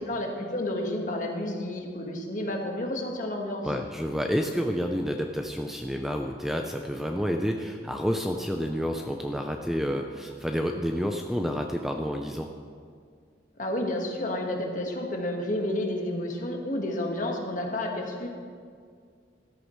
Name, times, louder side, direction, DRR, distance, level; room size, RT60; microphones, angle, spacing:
voice 1, 0.1-3.7 13.6-18.3, left 1 dB, 45° left, 1 dB, 1.5 m, -30 dB
voice 2, 3.6-12.5, equal, ahead, 3 dB, 0.5 m, -29 dB
13.5 x 13.5 x 3.1 m, 2.1 s
head